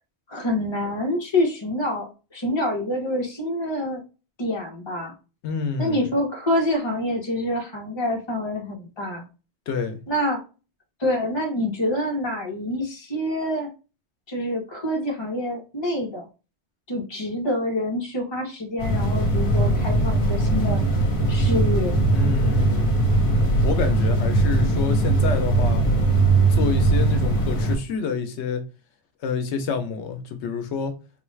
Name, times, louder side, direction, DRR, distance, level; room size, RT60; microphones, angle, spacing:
voice 1, 0.3-4.0 4.4-5.1 5.8-9.2 10.1-10.4 11.0-13.7 14.3-16.2 16.9-20.8 21.3-22.0, left 1 dB, 25° left, 0.9 m, -26 dB
voice 2, 5.4-6.1 9.7-10.0 22.1-22.9 23.6-25.8 26.5-28.6 29.2-31.0, left 5 dB, 85° left, 0.9 m, -28 dB
sound 1, 18.8-27.8, right 2 dB, 55° left, 1.1 m, -20 dB
3.8 x 2.3 x 3.1 m
omnidirectional pair, 1.1 m